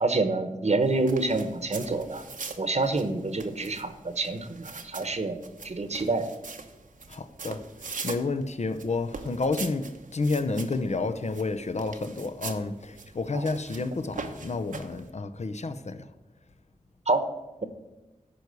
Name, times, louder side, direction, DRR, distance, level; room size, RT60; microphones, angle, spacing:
voice 1, 0.0-2.2 2.6-6.3 13.3-13.4 17.1-17.2, right 3 dB, 55° right, 1.1 m, -27 dB
sound 1, 0.8-15.1, right 4 dB, 85° right, 1.0 m, -42 dB
voice 2, 7.1-7.6 8.0-16.1, left 3 dB, 60° left, 0.8 m, -30 dB
11.5 x 4.8 x 8.2 m
wide cardioid pair, 55°, 13 cm